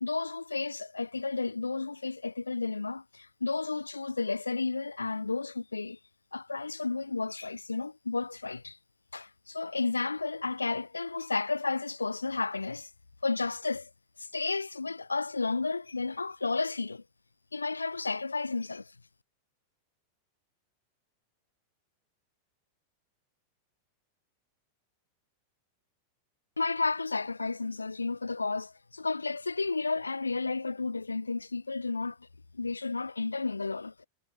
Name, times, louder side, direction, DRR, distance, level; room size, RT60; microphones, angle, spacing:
voice 1, 0.0-6.0 6.3-8.8 9.1-12.9 13.2-13.9 14.2-17.0 17.5-18.9 26.6-32.2 32.5-34.1, left 3 dB, 80° left, 1.3 m, -32 dB
figure-of-eight pair, 90°, 0 cm